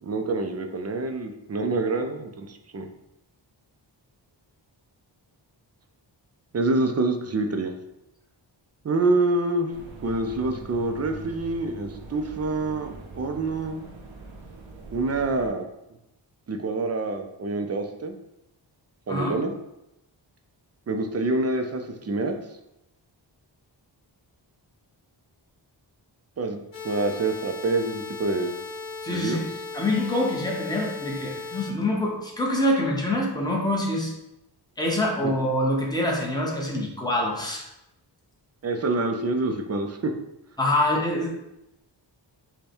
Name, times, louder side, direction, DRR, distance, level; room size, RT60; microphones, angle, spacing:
voice 1, 0.0-2.9 6.5-7.7 8.8-9.7 10.0-12.9 13.2-13.8 14.9-15.6 16.5-18.1 19.1-19.5 20.9-22.4 26.4-28.6 29.1-29.5 35.2-35.3 38.6-40.1, right 2 dB, 35° right, 5 dB, 0.4 m, -26 dB
sound 1, 9.7-15.5, right 2 dB, 90° right, 0.9 m, -43 dB
sound 2, 26.7-31.7, left 4 dB, 90° left, 0.7 m, -37 dB
voice 2, 29.0-29.5 29.7-34.1 34.8-37.6 40.6-41.3, left 1 dB, 10° left, -2 dB, 0.8 m, -25 dB
5.4 x 2.2 x 4.4 m, 0.89 s
wide cardioid pair, 160°, 45 cm